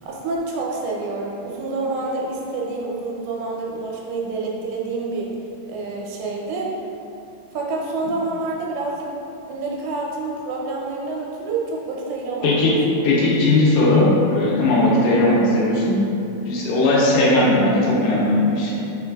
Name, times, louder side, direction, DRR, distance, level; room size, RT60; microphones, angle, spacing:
voice 1, 0.0-5.3 5.7-6.7 7.5-9.1 9.5-12.5, right 3 dB, 85° right, -2 dB, 2.6 m, -27 dB
voice 2, 12.4-12.7 13.0-16.0 16.5-18.7, left 2 dB, 90° left, -6 dB, 2.8 m, -17 dB
5.5 x 3.9 x 2.3 m, 2.8 s
omnidirectional pair, 4.4 m